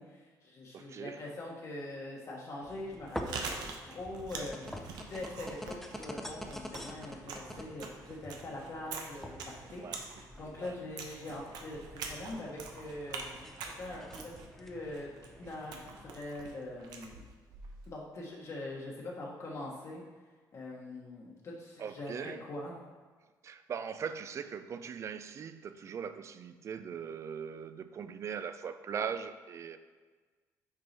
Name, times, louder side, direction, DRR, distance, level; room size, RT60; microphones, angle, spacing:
voice 1, 0.0-13.2 13.8-17.2 17.9-20.0 20.5-22.8, left 2 dB, 45° left, -2 dB, 1.3 m, -43 dB
voice 2, 0.7-1.2 9.8-10.0 10.6-10.7 21.8-22.4 23.4-29.8, right 7 dB, 45° right, 11 dB, 0.4 m, -40 dB
sound 1, 2.6-16.2, equal, 5° left, 0.6 m, -47 dB
Chewing mastication, 2.9-18.0, right 4 dB, 90° right, 0.9 m, -45 dB
6.2 x 4.7 x 4.2 m, 1.4 s
cardioid pair, 110°, 7 cm